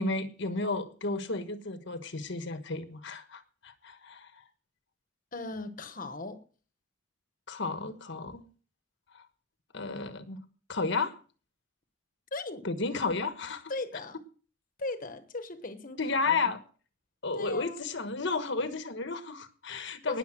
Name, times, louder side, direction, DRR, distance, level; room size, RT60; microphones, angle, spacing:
voice 1, 0.0-4.4 7.5-8.4 9.1-9.2 9.7-10.4 10.7-11.2 12.6-13.7 16.0-16.6 17.2-20.2, left 3 dB, 60° left, 1.3 m, -32 dB
voice 2, 5.3-6.4 12.3-12.7 13.7-14.2 14.8-16.0 16.3-16.5 17.3-17.9 20.1-20.2, left 2 dB, 40° left, 1.3 m, -38 dB
19.0 x 7.1 x 6.2 m
head